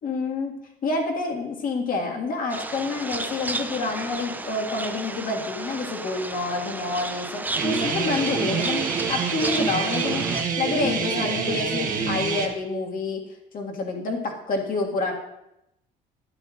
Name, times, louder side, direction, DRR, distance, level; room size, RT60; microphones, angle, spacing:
voice 1, 0.0-0.5 0.8-13.2 13.5-15.1, left 3 dB, 55° left, 1 dB, 1.9 m, -28 dB
sound 1, 2.5-10.4, right 2 dB, 10° right, 0.6 m, -33 dB
Guitar, 7.6-12.5, right 5 dB, 50° right, 1.3 m, -26 dB
12.0 x 10.0 x 2.5 m, 0.85 s
cardioid pair, 110°, 17 cm